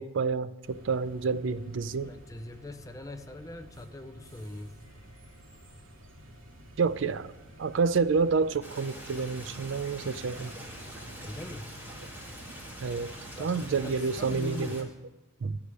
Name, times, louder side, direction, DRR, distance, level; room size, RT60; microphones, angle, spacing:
voice 1, 0.0-2.1 6.8-7.3 7.6-10.5 12.8-13.1 13.4-14.9 15.4-15.6, right 5 dB, 65° right, 15 dB, 0.4 m, -29 dB
sound 1, 0.6-14.5, equal, 80° right, 2.4 m, -50 dB
voice 2, 2.0-4.8 11.2-11.7 13.3-14.9, left 1 dB, 15° left, 9 dB, 0.4 m, -42 dB
Stream, 8.6-14.8, equal, 10° right, 1.8 m, -45 dB
11.5 x 4.9 x 8.2 m, 1.1 s
head